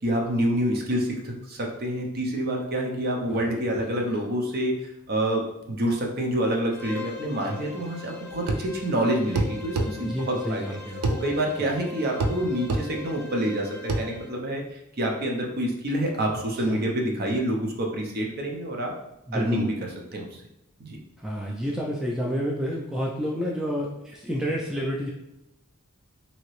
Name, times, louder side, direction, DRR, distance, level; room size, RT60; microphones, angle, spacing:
voice 1, 0.0-10.7 11.2-18.9 19.3-19.7 20.1-20.4 20.8-21.0, right 1 dB, 45° right, 0 dB, 0.6 m, -27 dB
voice 2, 3.7-4.1 10.0-11.1 11.6-11.7 16.6-16.8 19.3-19.7 21.2-25.1, equal, 5° right, -3 dB, 0.3 m, -30 dB
Bowed string instrument, 6.7-14.4, left 5 dB, 50° left, 0.6 m, -41 dB
sound 1, 8.5-8.7 9.4-9.9 11.0-11.2 12.2-12.4 12.7-12.9 13.9-14.1, right 2 dB, 90° right, 0.4 m, -24 dB
2.9 x 2.7 x 3.1 m, 0.91 s
head